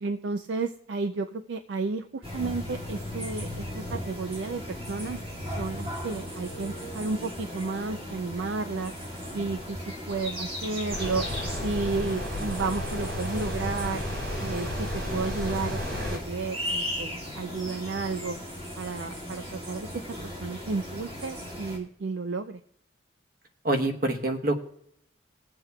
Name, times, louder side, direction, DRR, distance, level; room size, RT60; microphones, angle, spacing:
voice 1, 0.0-8.9 9.3-11.3 11.6-14.0 14.4-18.4 18.8-20.0 20.4-22.6, right 4 dB, 65° right, 8 dB, 0.4 m, -32 dB
sound 1, 2.2-21.8, equal, 30° right, 2.2 m, -37 dB
sound 2, 10.9-16.2, left 1 dB, 90° right, 4.0 m, -32 dB
voice 2, 23.6-24.6, right 2 dB, 45° right, 3 dB, 1.0 m, -26 dB
21.5 x 7.6 x 2.3 m, 0.71 s
head